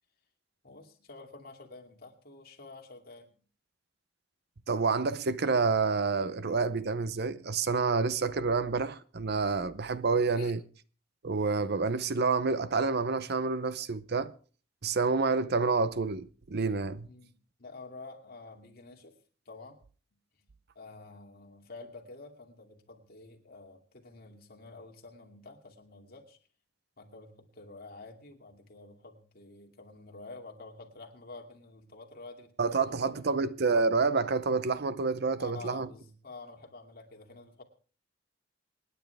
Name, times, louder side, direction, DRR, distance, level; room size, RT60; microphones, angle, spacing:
voice 1, 0.6-3.3 10.4-10.5 17.0-19.2 19.5-19.8 20.3-20.5 20.7-26.4 27.0-33.4 35.4-37.6, left 3 dB, 50° left, 2.5 m, -49 dB
voice 2, 4.7-10.6 11.2-14.3 14.8-17.1 32.6-35.9, right 4 dB, 55° right, 0.7 m, -28 dB
27.0 x 10.0 x 3.4 m
head